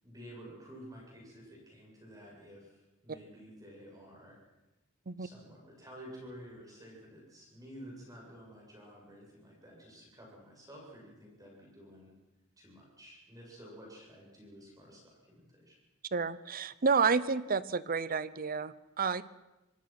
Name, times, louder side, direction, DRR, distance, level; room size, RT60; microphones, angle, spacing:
voice 1, 0.0-4.4 5.2-12.1 12.6-15.8, equal, 15° right, -2 dB, 7.7 m, -51 dB
voice 2, 16.1-19.2, right 5 dB, 45° right, 17 dB, 0.8 m, -30 dB
26.5 x 19.0 x 6.1 m, 1.0 s
head